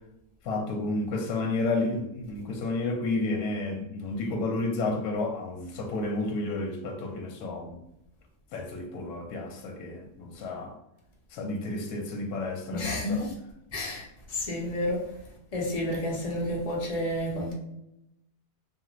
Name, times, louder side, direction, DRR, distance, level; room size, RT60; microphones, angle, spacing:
voice 1, 0.4-7.8 8.5-10.7 11.3-13.2, left 2 dB, 75° left, 1.0 m, -31 dB
voice 2, 12.7-13.3 13.7-14.0 14.3-15.0 15.5-17.5, left 1 dB, 45° left, 0.4 m, -30 dB
2.7 x 2.4 x 2.9 m
omnidirectional pair, 1.7 m